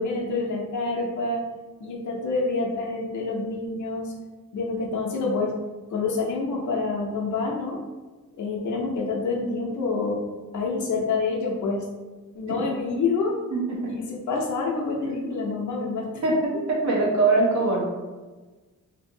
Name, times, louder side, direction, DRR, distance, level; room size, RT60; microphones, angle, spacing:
voice 1, 0.0-1.4 1.8-4.1 4.5-5.5 5.9-7.8 8.4-10.2 10.5-11.9 12.3-13.3 13.8-16.2 16.5-16.6, left 3 dB, 65° left, -1 dB, 0.5 m, -27 dB
voice 2, 16.2-17.9, right 2 dB, 60° right, -3 dB, 0.6 m, -22 dB
2.7 x 2.6 x 2.6 m, 1.3 s
wide cardioid pair, 180°, 32 cm